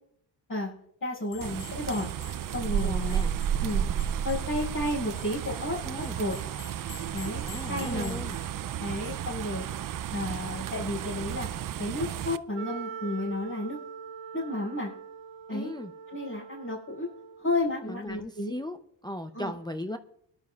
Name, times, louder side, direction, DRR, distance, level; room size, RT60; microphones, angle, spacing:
voice 1, 1.0-2.1 2.5-3.2 3.6-3.9 4.2-6.4 7.1-8.2 8.8-9.7 10.1-11.5 11.8-13.8 14.3-14.9 15.5-15.7 16.1-17.1 17.4-18.5 19.3-19.5, left 2 dB, 40° left, -8 dB, 5.6 m, -32 dB
sound 1, 1.3-8.5, left 7 dB, 70° left, 2.0 m, -50 dB
sound 2, 1.4-12.4, right 10 dB, 50° right, 0.4 m, -32 dB
voice 2, 2.8-3.3 5.8-6.2 7.5-8.4 15.5-15.9 17.8-18.8 19.0-20.0, left 1 dB, 10° left, 6 dB, 0.5 m, -37 dB
Wind instrument woodwind instrument, 12.5-17.6, right 6 dB, 85° right, 0.7 m, -43 dB
23.5 x 12.0 x 2.4 m, 0.69 s
cardioid pair, 95°, 46 cm